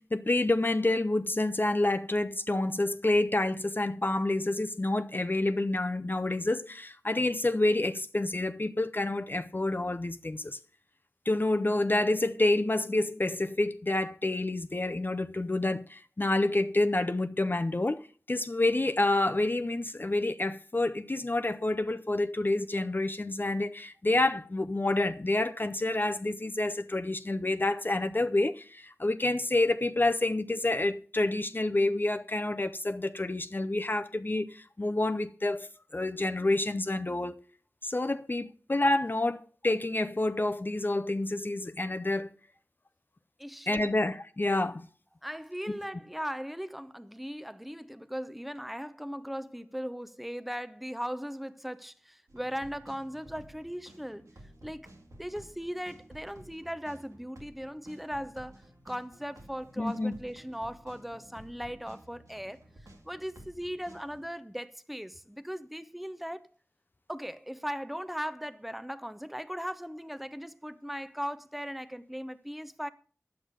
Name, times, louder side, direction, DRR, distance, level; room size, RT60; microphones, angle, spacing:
voice 1, 0.0-10.6 11.3-37.4 37.8-42.3 43.7-44.9 59.8-60.1, left 2 dB, 40° left, 0.6 m, -28 dB
voice 2, 43.4-43.9 45.2-54.2 54.6-54.9 55.2-62.6 63.0-66.5 67.1-72.9, equal, ahead, 0.8 m, -38 dB
sound 1, 52.3-64.2, right 1 dB, 80° right, 2.2 m, -53 dB
9.9 x 7.9 x 6.6 m
wide cardioid pair, 50°, 5 cm